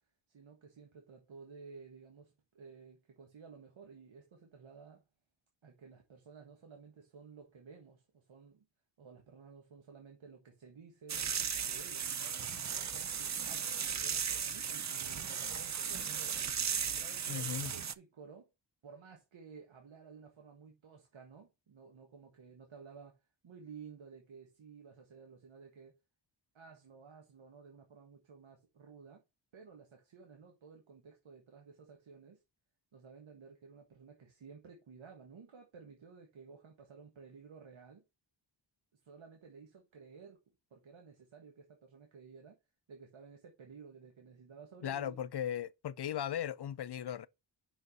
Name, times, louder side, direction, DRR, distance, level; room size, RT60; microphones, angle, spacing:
voice 1, 0.3-5.0 5.6-8.6 9.0-11.3 11.6-18.5 18.8-25.9 26.5-29.2 29.5-32.4 32.9-38.0 39.0-40.4 40.7-42.6 42.9-45.2, right 5 dB, 85° right, 1.6 m, -54 dB
sound 1, 11.1-17.9, right 7 dB, 40° right, 0.5 m, -36 dB
voice 2, 17.3-17.7 44.8-47.3, left 10 dB, 60° left, 0.6 m, -37 dB
5.9 x 5.3 x 5.4 m
wide cardioid pair, 110°, 45 cm